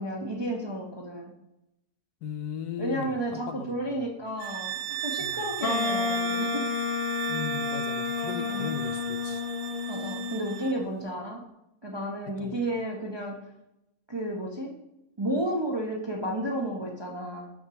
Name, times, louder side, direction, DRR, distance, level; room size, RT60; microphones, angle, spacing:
voice 1, 0.0-1.3 2.8-6.7 8.4-8.7 9.9-11.4 11.8-13.4 14.1-14.7 15.2-17.5, right 1 dB, 25° right, -1 dB, 0.6 m, -32 dB
voice 2, 2.2-4.1 5.2-5.4 7.3-9.4 12.4-12.6, left 7 dB, 85° left, 9 dB, 1.2 m, -37 dB
sound 1, 4.4-10.8, right 12 dB, 90° right, 1.2 m, -36 dB
Wind instrument woodwind instrument, 5.6-10.6, left 5 dB, 60° left, 0.6 m, -30 dB
6.5 x 4.5 x 5.7 m, 0.89 s
omnidirectional pair, 1.6 m